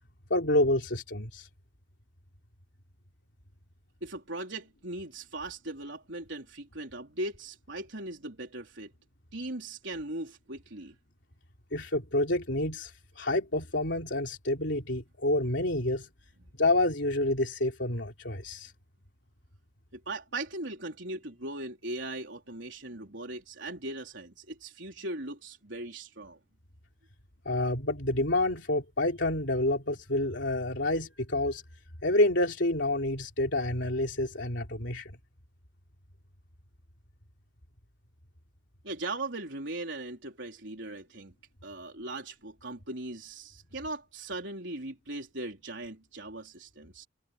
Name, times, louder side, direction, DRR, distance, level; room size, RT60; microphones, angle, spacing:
voice 1, 0.3-1.5 11.7-16.1 16.6-18.7 27.5-31.6 32.0-35.1, left 1 dB, 70° left, 3.8 m, -28 dB
voice 2, 4.0-8.9 9.3-11.0 19.9-26.4 38.8-41.3 41.6-47.1, right 2 dB, 75° right, 3.9 m, -39 dB
head